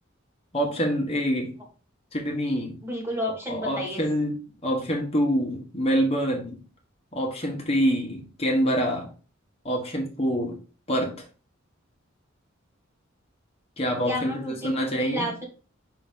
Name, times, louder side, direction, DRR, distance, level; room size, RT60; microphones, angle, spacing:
voice 1, 0.5-1.5 2.1-2.8 3.5-6.6 7.1-9.1 9.6-10.6 10.9-11.2 13.8-15.3, equal, 30° left, 1.4 m, -26 dB
voice 2, 2.8-4.0 14.1-15.5, equal, 10° right, 1.4 m, -31 dB
5.8 x 3.1 x 5.3 m
head